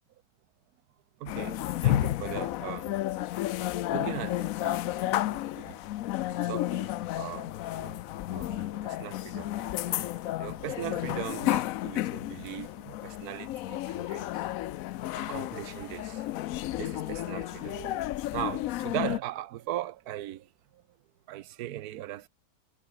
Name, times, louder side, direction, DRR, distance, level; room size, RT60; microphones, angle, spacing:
voice 1, 1.2-3.0 3.9-5.8 6.3-14.5 15.1-16.3 16.8-20.8 21.3-22.3, right 13 dB, 65° right, 1.2 m, -39 dB
sound 1, 1.3-19.2, left 15 dB, 70° left, 0.8 m, -32 dB
omnidirectional pair, 1.9 m